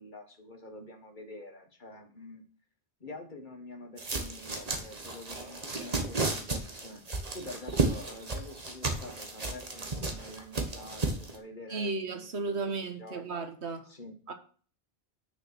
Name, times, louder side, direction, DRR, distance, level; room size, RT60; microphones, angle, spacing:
voice 1, 0.0-2.4 3.0-7.0 7.3-13.2 13.9-14.2, left 1 dB, 45° left, 1.7 m, -47 dB
sound 1, 4.0-11.4, right 3 dB, 35° right, 1.4 m, -33 dB
voice 2, 11.7-13.9 14.3-14.4, right 3 dB, 80° right, 1.6 m, -34 dB
6.6 x 6.1 x 6.4 m
omnidirectional pair, 1.1 m